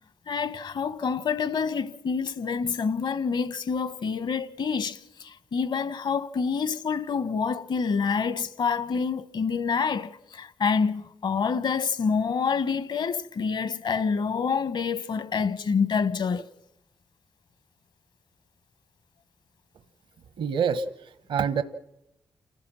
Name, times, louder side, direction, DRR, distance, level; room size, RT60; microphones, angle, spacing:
voice 1, 0.3-16.5, left 5 dB, 65° left, 1.2 m, -27 dB
voice 2, 20.4-21.6, right 6 dB, 75° right, 1.0 m, -27 dB
29.0 x 15.0 x 6.3 m
hypercardioid pair, 40°, 9 cm